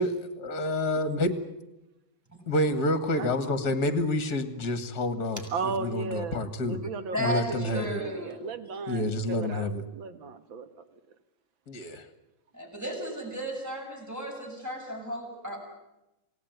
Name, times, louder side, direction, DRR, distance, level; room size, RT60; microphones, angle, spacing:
voice 1, 0.0-1.4 2.5-6.8 7.2-8.0 8.9-9.8 11.7-12.1, left 1 dB, 50° left, 11 dB, 2.3 m, -28 dB
voice 2, 5.5-11.2, right 4 dB, 75° right, 10 dB, 2.4 m, -36 dB
voice 3, 7.1-8.5 12.5-15.6, equal, 10° right, 1 dB, 7.2 m, -34 dB
28.0 x 18.5 x 9.5 m, 0.94 s
omnidirectional pair, 2.2 m